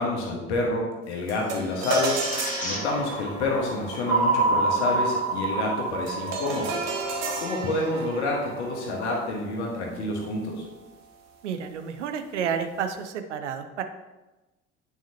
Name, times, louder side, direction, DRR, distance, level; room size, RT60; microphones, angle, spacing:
voice 1, 0.0-2.2 2.6-6.7 7.4-10.7, left 2 dB, 70° left, -1 dB, 1.6 m, -28 dB
sound 1, 1.3-10.8, right 3 dB, 45° right, 1.1 m, -34 dB
sound 2, 1.9-7.4 7.9-9.2, equal, 20° left, 2.2 m, -37 dB
sound 3, 4.1-8.3, right 3 dB, 20° right, 1.5 m, -26 dB
voice 2, 11.4-13.8, right 7 dB, 75° right, 8 dB, 0.7 m, -30 dB
9.2 x 4.8 x 2.9 m, 1.1 s
figure-of-eight pair, 55°, 35 cm